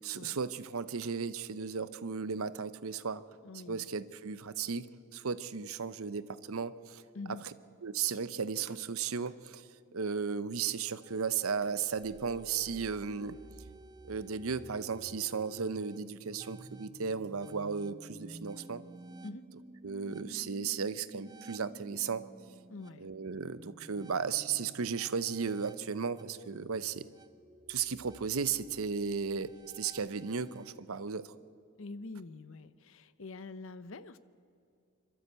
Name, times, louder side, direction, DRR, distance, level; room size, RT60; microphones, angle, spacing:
voice 1, 0.0-3.2 3.7-4.9 5.1-7.0 7.8-13.4 14.1-18.8 19.8-22.3 23.0-27.1 27.7-31.2, right 6 dB, 75° right, 15 dB, 0.7 m, -35 dB
voice 2, 3.4-3.9 7.1-7.4 19.2-19.4 22.7-23.1 31.8-34.2, left 3 dB, 65° left, 14 dB, 0.7 m, -45 dB
sound 1, 11.0-30.8, right 2 dB, 20° right, 0.4 m, -52 dB
25.5 x 13.0 x 8.1 m, 2.5 s
head